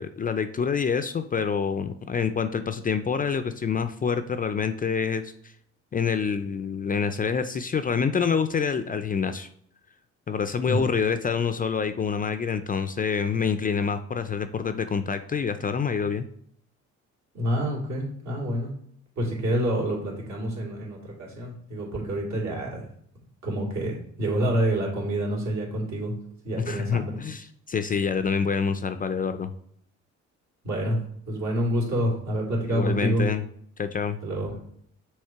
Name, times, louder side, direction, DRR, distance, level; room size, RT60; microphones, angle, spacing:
voice 1, 0.0-5.5 5.9-9.5 10.3-16.3 26.6-29.5 32.7-33.4 33.8-34.2, left 6 dB, 30° left, 10 dB, 0.4 m, -27 dB
voice 2, 17.3-18.7 19.2-22.9 23.4-26.1 26.4-27.1 30.6-31.0 31.3-33.2 34.2-34.6, right 1 dB, 65° right, -3 dB, 2.6 m, -27 dB
6.4 x 3.2 x 4.5 m, 0.65 s
cardioid pair, 90°, 30 cm